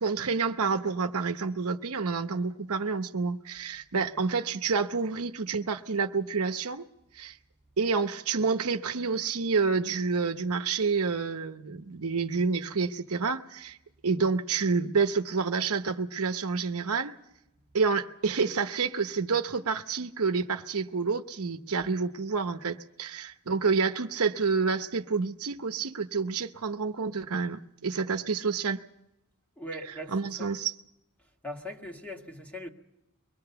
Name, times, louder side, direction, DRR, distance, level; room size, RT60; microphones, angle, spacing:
voice 1, 0.0-6.9 7.1-7.4 7.8-13.8 14.0-17.2 17.7-28.8 30.1-30.7, right 5 dB, 75° right, 0.9 m, -28 dB
voice 2, 29.6-30.5 31.4-32.7, left 1 dB, 5° left, 1.8 m, -40 dB
23.5 x 19.5 x 6.9 m
head